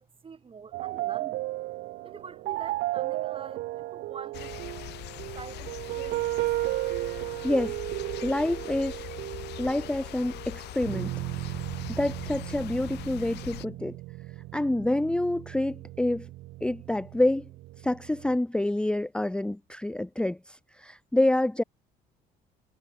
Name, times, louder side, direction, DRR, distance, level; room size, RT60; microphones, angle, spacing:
voice 1, 0.0-1.5 2.0-4.6 5.3-6.4, right 5 dB, 30° right, 6.5 m, -45 dB
sound 1, 0.7-18.4, right 18 dB, 80° right, 1.0 m, -35 dB
sound 2, 4.3-13.7, left 17 dB, 80° left, 4.5 m, -42 dB
voice 2, 7.4-7.8 8.2-9.1 9.6-11.1 11.9-14.0 14.5-16.3 16.6-17.5 17.8-21.6, left 1 dB, 5° left, 0.9 m, -27 dB
cardioid pair, 110°, 17 cm